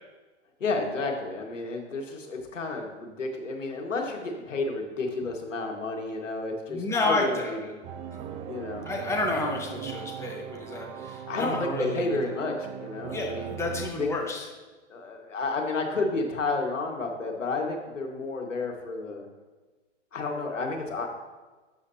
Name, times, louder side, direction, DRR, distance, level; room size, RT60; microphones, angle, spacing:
voice 1, 0.6-7.8 8.5-8.8 11.3-13.6 14.0-14.1 14.9-19.3 20.1-21.1, left 3 dB, 90° left, 2 dB, 1.8 m, -31 dB
voice 2, 6.7-7.6 8.9-12.1 13.1-14.5, left 2 dB, 5° left, 0 dB, 1.1 m, -30 dB
sound 1, 7.8-13.9, right 9 dB, 15° right, 0.4 m, -39 dB
11.5 x 7.6 x 2.8 m, 1.3 s
hypercardioid pair, 125°, 37 cm